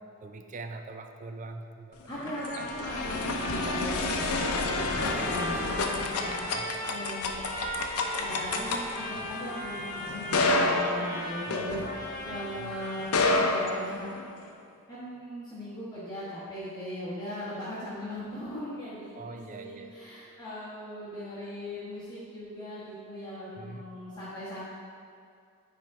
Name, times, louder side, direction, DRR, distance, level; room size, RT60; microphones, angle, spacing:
voice 1, 0.2-2.3 2.6-2.7 3.5-3.8 6.5-6.7 11.5-12.7 19.2-19.9 23.6-23.9, right 3 dB, 35° right, 6 dB, 0.4 m, -43 dB
sound 1, 2.0-12.4 13.0-14.5, left 2 dB, 80° left, 0.6 m, -30 dB
voice 2, 2.1-7.3 8.2-13.1 13.4-14.1 14.9-24.7, equal, 20° left, -11 dB, 1.2 m, -39 dB
Trumpet, 2.3-13.9, left 1 dB, 35° left, 0.9 m, -38 dB
9.1 x 3.6 x 4.7 m, 2.3 s
head